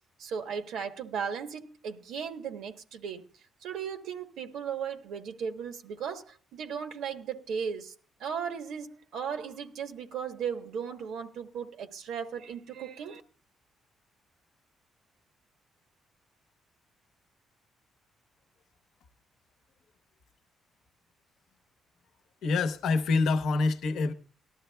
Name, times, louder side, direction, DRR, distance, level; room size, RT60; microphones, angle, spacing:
voice 1, 0.2-3.3 3.6-7.9 8.2-13.2, right 7 dB, 80° right, 0.9 m, -36 dB
voice 2, 22.4-24.1, left 4 dB, 75° left, 0.8 m, -26 dB
18.5 x 12.5 x 2.2 m
cardioid pair, 90°, 0 cm